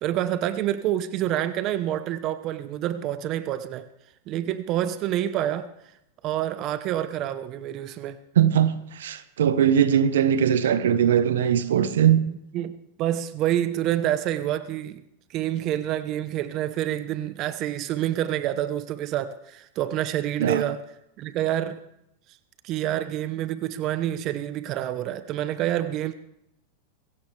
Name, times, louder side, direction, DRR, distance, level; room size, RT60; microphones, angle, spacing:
voice 1, 0.0-3.8 4.3-5.7 6.2-8.2 12.3-12.7 13.0-15.0 15.3-20.8 21.2-21.8 22.6-26.1, right 12 dB, 45° right, 1.0 m, -27 dB
voice 2, 8.4-12.2 20.4-20.6, right 9 dB, 80° right, 1.1 m, -20 dB
22.5 x 16.5 x 3.4 m
hypercardioid pair, 110°, 0 cm